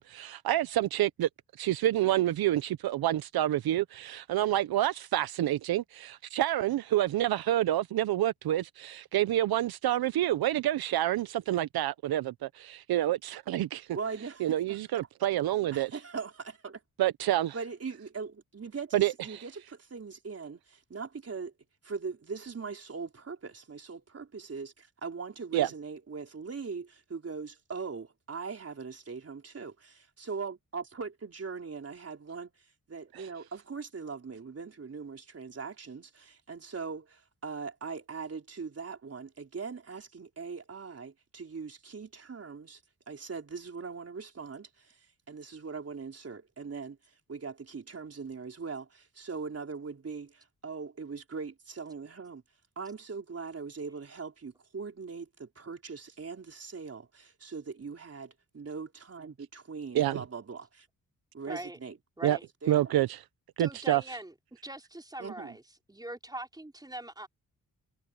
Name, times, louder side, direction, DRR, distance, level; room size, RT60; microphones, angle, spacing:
voice 1, 0.1-1.3 1.6-13.9 14.4-15.9 17.0-17.5 18.9-19.4 25.5-25.7 59.9-60.2 62.2-62.4 62.7-63.2 63.6-64.0, right 13 dB, 80° right, 0.7 m, -28 dB
voice 2, 13.9-15.0 15.7-16.8 17.5-21.5 21.8-32.5 32.9-42.8 43.1-47.0 47.3-52.4 52.8-60.9 61.3-62.9 65.2-65.6, right 5 dB, 40° right, 4.3 m, -41 dB
voice 3, 61.5-61.8 62.2-62.5 63.6-64.3 64.6-65.6 65.9-67.3, right 1 dB, 10° right, 4.1 m, -41 dB
cardioid pair, 80°, 36 cm